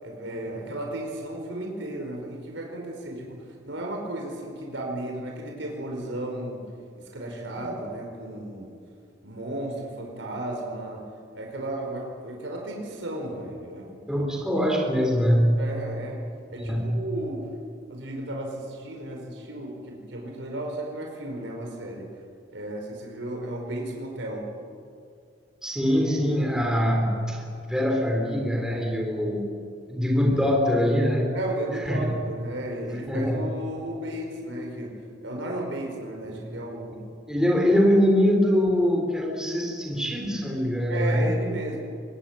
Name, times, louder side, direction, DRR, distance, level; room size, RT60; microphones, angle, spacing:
voice 1, 0.0-6.7 7.0-8.7 9.2-11.0 11.3-14.1 15.6-17.6 17.9-22.1 22.5-24.5 31.3-37.0 40.9-41.8, right 1 dB, 75° right, 0 dB, 5.0 m, -34 dB
voice 2, 14.1-15.6 16.6-16.9 25.6-27.4 27.7-29.5 29.9-31.3 31.9-32.1 33.1-33.4 36.2-36.3 37.3-41.3, equal, 5° right, 1 dB, 3.8 m, -23 dB
23.5 x 20.5 x 8.9 m, 2.4 s
head